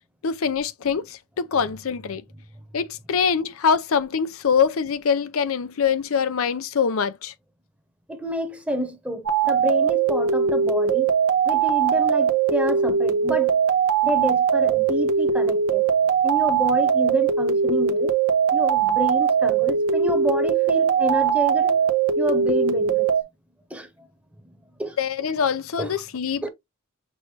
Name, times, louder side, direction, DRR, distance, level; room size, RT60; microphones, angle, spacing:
voice 1, 0.2-2.2 2.7-7.3 25.0-26.5, left 6 dB, 70° left, 0.5 m, -24 dB
voice 2, 8.1-11.1 11.4-13.6 14.0-15.9 16.2-18.1 18.5-21.8 22.2-23.1 23.7-23.9 24.8-25.0 25.8-25.9 26.4-26.5, equal, 5° right, 1.0 m, -28 dB
sound 1, 9.3-23.2, right 6 dB, 90° right, 0.9 m, -21 dB
6.2 x 2.6 x 3.3 m
head